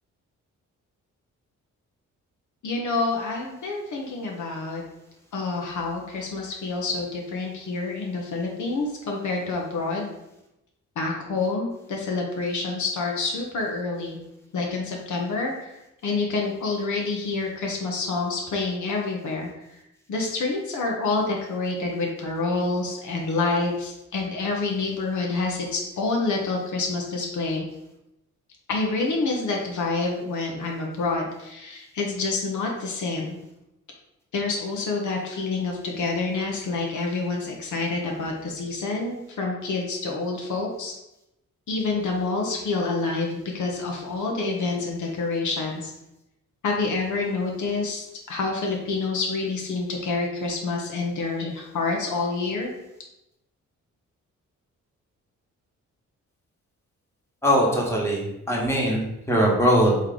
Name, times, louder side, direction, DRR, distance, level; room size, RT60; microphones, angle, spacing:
voice 1, 2.6-4.8 5.3-10.1 11.0-14.2 14.5-15.5 16.0-19.5 20.1-27.7 28.7-33.4 34.3-40.9 41.7-45.9 46.6-52.7, left 3 dB, 70° left, 0 dB, 0.8 m, -27 dB
voice 2, 57.4-60.0, equal, 10° left, -3 dB, 1.3 m, -21 dB
3.2 x 3.1 x 3.8 m, 0.89 s
cardioid pair, 70°, 31 cm